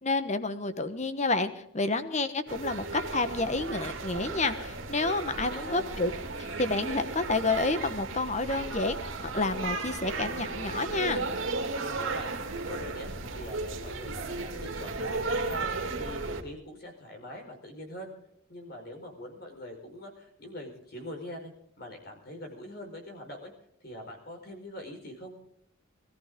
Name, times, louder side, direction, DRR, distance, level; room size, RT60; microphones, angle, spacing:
voice 1, 0.0-6.1 6.6-11.3, left 3 dB, 35° left, 11 dB, 1.2 m, -29 dB
sound 1, 2.5-16.4, right 3 dB, 75° right, 2.6 m, -35 dB
voice 2, 5.5-5.9 11.8-12.3 12.6-13.1 13.3-14.9 15.3-15.7 16.0-18.1 18.5-21.5 21.8-23.5 23.8-25.4, left 1 dB, 50° left, 2 dB, 4.8 m, -43 dB
22.0 x 14.0 x 3.8 m, 0.71 s
head